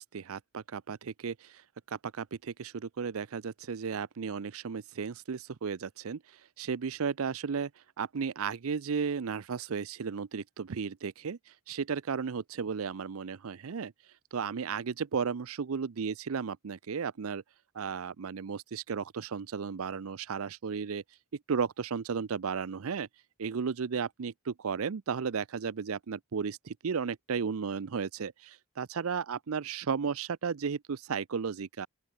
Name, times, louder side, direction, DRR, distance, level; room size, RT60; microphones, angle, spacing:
voice 1, 0.0-1.6 1.9-7.7 8.0-13.9 14.3-17.4 17.7-21.0 21.5-23.1 23.4-31.9, right 6 dB, 80° right, 0.5 m, -34 dB
open air
head